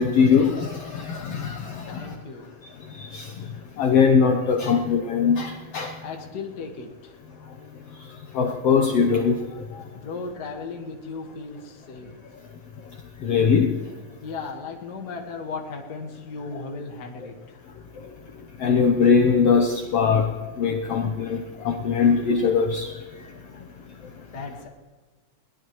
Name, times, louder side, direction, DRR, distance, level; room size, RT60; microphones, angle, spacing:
voice 1, 0.0-2.1 3.1-3.3 3.8-5.9 8.4-9.4 13.2-13.7 18.6-20.3 20.6-22.9, left 6 dB, 65° left, 4 dB, 1.8 m, -21 dB
voice 2, 1.9-2.5 6.0-7.1 9.9-12.1 14.2-17.8 24.3-24.7, left 4 dB, 40° left, 2 dB, 1.8 m, -36 dB
22.0 x 18.0 x 3.1 m, 1.4 s
omnidirectional pair, 3.4 m